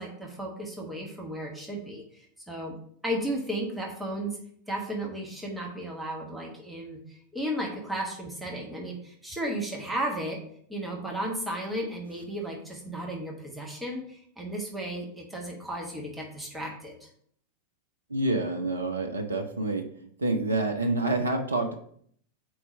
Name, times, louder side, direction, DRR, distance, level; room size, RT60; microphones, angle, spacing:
voice 1, 0.0-2.8 3.0-4.4 4.7-10.4 10.7-17.1, right 1 dB, 5° right, -1 dB, 1.2 m, -34 dB
voice 2, 18.1-19.9 20.2-21.7, right 2 dB, 75° right, 5 dB, 0.6 m, -27 dB
4.7 x 4.0 x 5.3 m, 0.62 s
figure-of-eight pair, 90°, 0 cm